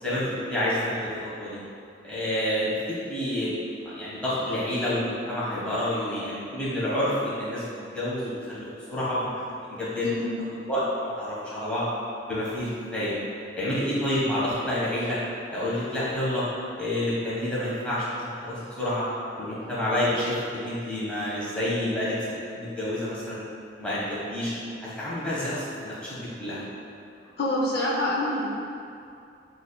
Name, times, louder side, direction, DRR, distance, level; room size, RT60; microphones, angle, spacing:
voice 1, 0.0-1.6 2.0-2.7 3.0-3.6 3.8-7.6 7.9-9.5 9.8-10.1 10.7-11.9 12.3-13.1 13.6-15.2 15.5-16.4 16.8-19.0 19.4-23.4 23.8-24.5 24.8-26.6, left 1 dB, 5° left, -9 dB, 1.0 m, -28 dB
voice 2, 10.0-10.3 27.4-28.5, left 1 dB, 60° left, -5 dB, 0.6 m, -26 dB
6.0 x 2.6 x 2.2 m, 2.5 s
head